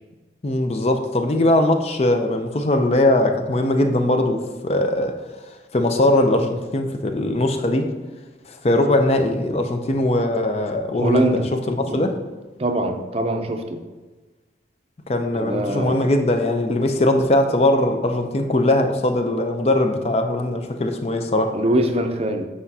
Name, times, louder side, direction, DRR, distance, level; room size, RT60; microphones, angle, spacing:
voice 1, 0.4-5.2 5.7-7.9 8.5-11.4 11.7-12.2 15.1-21.6, left 1 dB, 35° left, 0.5 m, -20 dB
voice 2, 11.0-11.5 11.9-12.1 12.6-13.8 15.3-16.1 21.5-22.5, right 1 dB, 35° right, 0.5 m, -23 dB
7.9 x 4.9 x 2.8 m
head